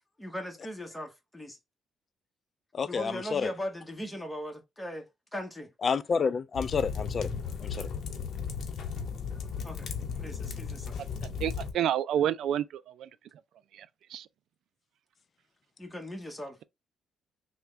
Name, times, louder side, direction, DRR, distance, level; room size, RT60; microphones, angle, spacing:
voice 1, 0.2-1.6 2.8-5.0 5.3-5.7 8.9-9.9 10.2-11.0 15.8-16.6, equal, 10° left, 1.1 m, -39 dB
voice 2, 2.7-3.5 5.8-7.3 7.6-7.9, left 5 dB, 45° left, 0.3 m, -29 dB
sound 1, 6.5-11.7, left 6 dB, 65° left, 0.8 m, -35 dB
voice 3, 11.4-13.1 13.8-13.9 14.1-14.3, right 10 dB, 75° right, 0.3 m, -29 dB
3.4 x 2.3 x 3.1 m
cardioid pair, 90°, 0 cm